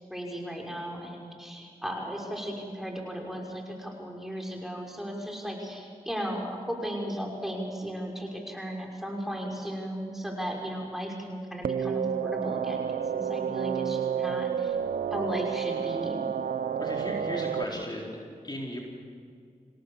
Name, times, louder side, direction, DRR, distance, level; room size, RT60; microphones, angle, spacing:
voice 1, 0.1-14.8 15.1-16.2, equal, ahead, 0 dB, 5.8 m, -36 dB
sound 1, 11.6-17.6, right 8 dB, 75° right, 0.7 m, -30 dB
voice 2, 16.8-18.2 18.4-18.8, left 1 dB, 30° left, -2 dB, 4.1 m, -36 dB
27.0 x 17.5 x 7.2 m, 2.3 s
cardioid pair, 40°, 15 cm